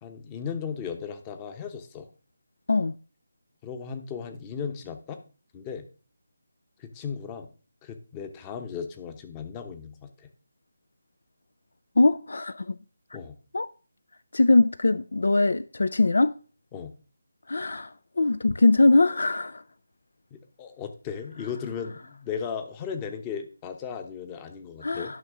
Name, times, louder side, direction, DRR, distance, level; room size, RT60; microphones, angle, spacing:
voice 1, 0.0-2.1 3.6-5.2 5.5-5.8 6.8-7.5 7.8-10.3 13.1-13.4 16.7-16.9 20.3-25.1, left 7 dB, 20° left, 0.9 m, -36 dB
voice 2, 12.0-12.8 13.5-13.7 14.3-16.3 17.5-19.6 24.8-25.2, left 2 dB, 65° left, 0.4 m, -22 dB
11.0 x 5.6 x 3.6 m
figure-of-eight pair, 160°, 0 cm